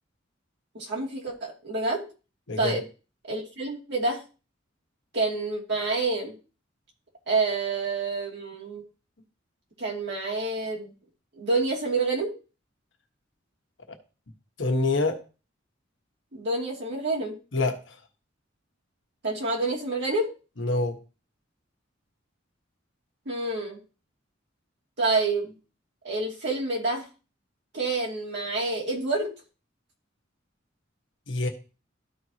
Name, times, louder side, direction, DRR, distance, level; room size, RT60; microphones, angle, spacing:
voice 1, 0.7-2.1 2.6-2.8 3.2-4.2 5.1-6.3 7.3-8.8 9.8-10.9 11.3-12.3 16.3-17.3 19.2-20.3 23.2-23.8 25.0-25.5 26.0-27.1 27.7-29.3, right 3 dB, 65° right, -3 dB, 2.8 m, -28 dB
voice 2, 14.6-15.2 17.5-18.0 20.6-21.0 31.3-31.5, left 2 dB, 70° left, 4 dB, 1.3 m, -26 dB
13.5 x 4.6 x 3.0 m, 0.33 s
head